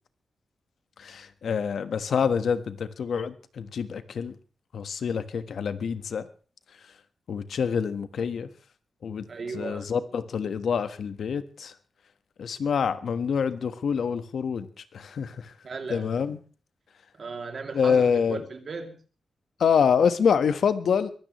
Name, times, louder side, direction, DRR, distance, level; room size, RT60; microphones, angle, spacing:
voice 1, 1.0-4.3 4.7-6.3 7.3-8.5 9.0-9.3 9.5-11.7 12.4-14.7 14.9-15.5 15.9-16.4 17.7-18.4 19.6-21.1, left 6 dB, 65° left, 11 dB, 1.3 m, -26 dB
voice 2, 9.3-9.9 15.6-16.1 17.1-18.9, right 4 dB, 45° right, 5 dB, 2.7 m, -36 dB
23.0 x 16.0 x 3.1 m, 0.39 s
wide cardioid pair, 175°, 0 cm